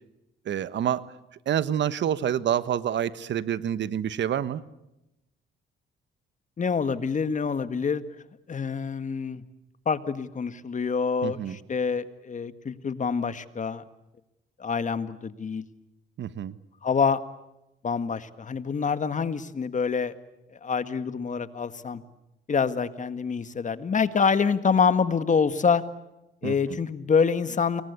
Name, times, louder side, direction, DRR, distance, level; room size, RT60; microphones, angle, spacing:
voice 1, 0.4-1.1 1.5-4.6 11.2-11.6 16.2-16.6 26.4-26.8, right 10 dB, 65° right, 15 dB, 1.3 m, -27 dB
voice 2, 6.6-8.0 8.5-9.4 9.9-13.8 14.6-15.6 16.8-17.2 17.8-20.1 20.5-22.0 22.5-25.8 26.4-27.8, left 5 dB, 40° left, 12 dB, 1.8 m, -26 dB
30.0 x 22.5 x 8.4 m, 0.92 s
cardioid pair, 90°, 20 cm